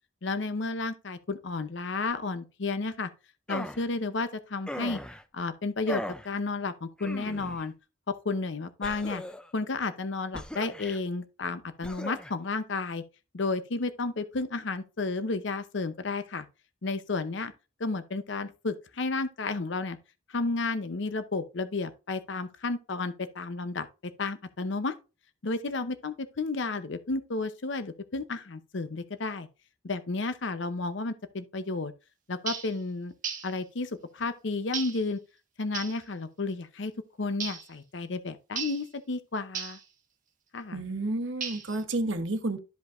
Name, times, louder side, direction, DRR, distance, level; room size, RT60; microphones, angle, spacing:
voice 1, 0.2-3.1 3.5-5.0 5.3-7.7 8.1-9.2 9.5-13.0 13.3-16.4 16.8-17.5 17.8-20.0 20.3-23.9 24.2-24.9 25.4-29.5 29.8-31.9 32.3-33.1 33.4-35.2 35.6-36.9 37.2-39.8 40.5-40.8, left 3 dB, 65° left, 0.7 m, -32 dB
sound 1, 3.5-3.9 4.7-5.2 5.9-6.3 7.0-7.6 8.8-9.5 10.3-11.0 11.8-12.3, left 1 dB, 5° left, 0.4 m, -38 dB
sound 2, 32.5-32.8 33.2-33.5 34.7-35.0 35.7-36.0 37.4-37.7 38.6-38.9 39.5-39.8 41.4-41.8, right 7 dB, 40° right, 1.2 m, -35 dB
voice 2, 40.7-42.6, right 2 dB, 65° right, 1.0 m, -30 dB
12.5 x 5.1 x 2.5 m
head